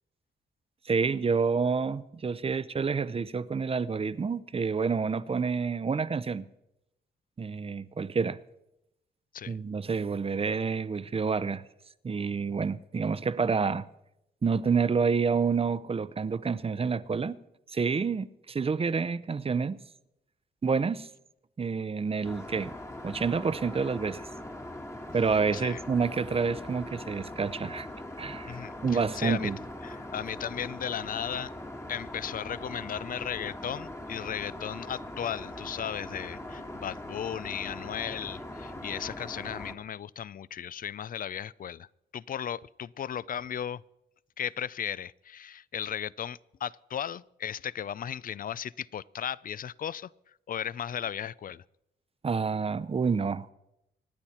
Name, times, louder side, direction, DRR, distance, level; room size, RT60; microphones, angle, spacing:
voice 1, 0.9-6.5 7.4-8.4 9.5-11.6 12.0-13.8 14.4-17.4 17.7-19.8 20.6-21.1 21.6-22.7 23.0-24.3 25.1-27.9 28.2-28.6 28.8-29.6 52.2-53.5, right 5 dB, 30° right, 0.6 m, -28 dB
Aircraft, 22.2-39.7, left 1 dB, 15° left, 1.5 m, -41 dB
voice 2, 28.4-29.5 29.8-31.5 31.9-41.9 42.1-43.8 44.4-50.1 50.5-51.6, left 9 dB, 50° left, 0.4 m, -36 dB
25.5 x 9.8 x 4.3 m
cardioid pair, 90°, 19 cm